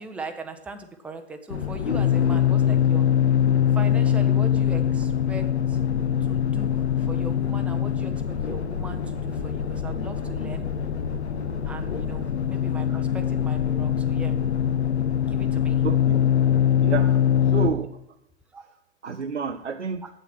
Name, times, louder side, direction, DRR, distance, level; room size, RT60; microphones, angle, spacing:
voice 1, 0.0-3.1 3.7-5.8 6.2-10.7 11.6-14.4 15.2-15.9 18.5-18.6 20.0-20.1, right 3 dB, 5° right, 5 dB, 0.6 m, -39 dB
sound 1, 1.5-17.7, left 9 dB, 65° left, 1.1 m, -23 dB
voice 2, 15.8-16.2 16.8-18.0 19.0-20.1, right 6 dB, 85° right, 5 dB, 0.6 m, -30 dB
9.1 x 7.6 x 6.2 m, 0.80 s
figure-of-eight pair, 100°, 35 cm